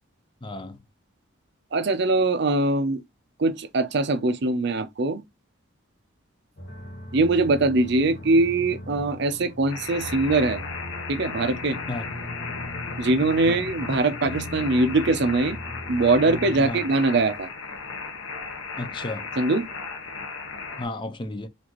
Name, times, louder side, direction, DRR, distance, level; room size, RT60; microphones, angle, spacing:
voice 1, 0.4-0.8 11.9-12.1 13.5-13.6 16.6-16.8 18.8-19.3 20.8-21.5, left 2 dB, 25° left, 0.4 m, -32 dB
voice 2, 1.7-3.0 3.4-5.2 7.1-10.6 11.1-11.8 13.0-15.6 15.9-17.5 19.4-19.7, right 2 dB, 55° right, 0.5 m, -22 dB
sound 1, 6.6-16.7, left 1 dB, 50° left, 1.3 m, -38 dB
sound 2, 9.7-20.8, left 4 dB, 80° left, 0.9 m, -36 dB
4.3 x 2.5 x 3.0 m
head